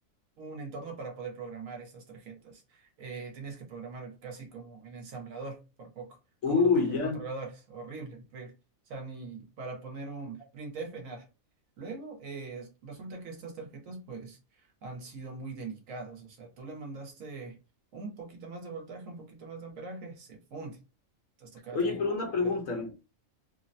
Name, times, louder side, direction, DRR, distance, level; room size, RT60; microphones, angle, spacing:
voice 1, 0.4-6.2 6.5-8.5 8.9-11.3 11.8-17.6 17.9-20.8 21.4-22.1 22.4-22.6, right 4 dB, 75° right, 1.2 m, -42 dB
voice 2, 6.4-7.2 21.7-22.9, left 4 dB, 70° left, 1.3 m, -27 dB
3.2 x 2.0 x 2.6 m
omnidirectional pair, 1.5 m